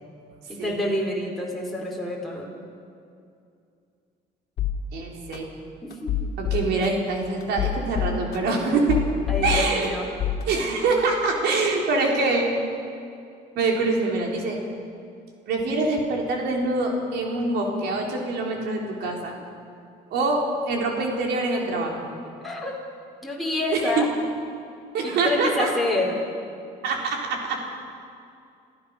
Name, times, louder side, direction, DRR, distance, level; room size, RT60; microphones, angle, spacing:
voice 1, 0.6-2.5 5.8-6.3 9.3-10.1 22.4-22.7 23.2-24.1 25.0-26.2, left 2 dB, ahead, -3 dB, 4.6 m, -27 dB
sound 1, 4.6-4.7 5.3-5.4 5.9-6.9 7.4-8.5 8.9-9.9 10.2-10.4, left 12 dB, 70° left, 2.2 m, -26 dB
voice 2, 4.9-5.5 6.4-9.0 9.4-9.9 10.5-12.5 13.6-14.6 15.5-19.3 20.1-22.0 23.7-24.0 24.9-25.7 26.8-27.6, right 3 dB, 80° right, 0 dB, 4.1 m, -24 dB
27.5 x 14.5 x 6.6 m, 2.4 s
cardioid pair, 110°, 17 cm